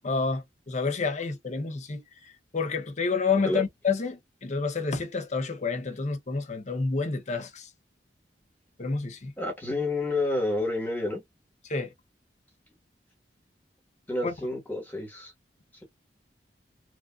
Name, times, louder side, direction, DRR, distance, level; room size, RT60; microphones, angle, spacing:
voice 1, 0.0-2.0 2.5-7.7 8.8-9.3 11.7-11.9 14.2-14.3, left 4 dB, 40° left, 0.6 m, -29 dB
voice 2, 9.4-11.2 14.1-15.3, left 2 dB, 10° left, 1.3 m, -29 dB
2.9 x 2.5 x 2.3 m
head